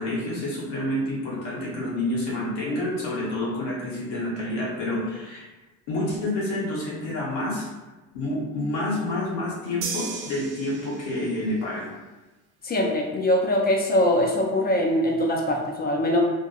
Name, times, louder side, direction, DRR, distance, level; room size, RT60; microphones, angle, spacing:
voice 1, 0.0-5.5 5.9-7.7 8.1-11.9, left 1 dB, 75° left, -5 dB, 1.0 m, -28 dB
sound 1, 9.8-11.4, right 5 dB, 70° right, 0.6 m, -35 dB
voice 2, 12.6-16.2, left 1 dB, 25° left, 0 dB, 0.5 m, -22 dB
2.7 x 2.4 x 2.3 m, 1.1 s
supercardioid pair, 75°, 40 cm